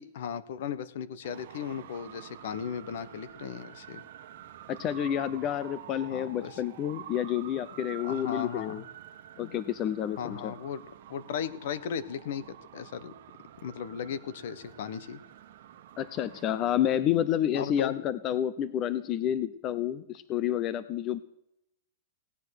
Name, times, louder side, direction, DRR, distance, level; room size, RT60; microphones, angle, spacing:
voice 1, 0.0-4.0 6.1-6.6 8.0-8.8 9.4-9.6 10.2-10.8 11.1-12.5 12.7-13.1 13.6-15.2 17.5-17.9, left 8 dB, 65° left, 14 dB, 1.2 m, -36 dB
Traffic noise roadway noise, 1.2-16.8, right 11 dB, 60° right, 1.6 m, -48 dB
voice 2, 4.7-8.8 9.4-10.5 16.0-21.2, left 10 dB, 30° left, 15 dB, 0.7 m, -29 dB
18.0 x 9.9 x 6.5 m, 0.78 s
hypercardioid pair, 145°, 0 cm